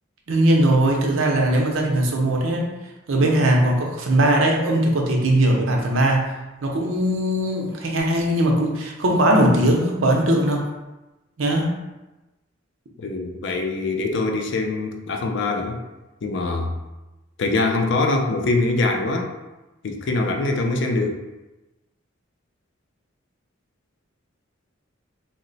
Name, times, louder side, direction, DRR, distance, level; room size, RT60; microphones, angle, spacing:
voice 1, 0.3-2.7 3.1-6.3 6.6-10.7 11.4-11.8, right 1 dB, 85° right, 0 dB, 0.6 m, -20 dB
voice 2, 13.0-15.8 16.2-16.7 17.4-19.3 19.8-21.2, left 2 dB, 65° left, 2 dB, 0.4 m, -23 dB
2.8 x 2.1 x 3.9 m, 1.0 s
head